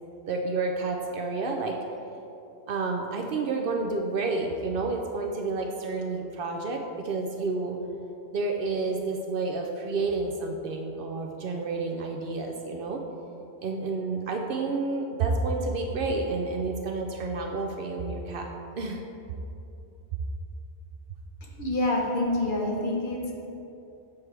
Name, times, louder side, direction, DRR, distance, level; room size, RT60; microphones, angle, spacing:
voice 1, 0.3-1.8 2.7-7.8 8.3-13.0 13.6-19.0, right 3 dB, 60° right, 2 dB, 0.7 m, -30 dB
voice 2, 21.4-23.3, left 2 dB, 50° left, -2 dB, 1.0 m, -27 dB
7.1 x 4.7 x 3.3 m, 2.8 s
omnidirectional pair, 1.1 m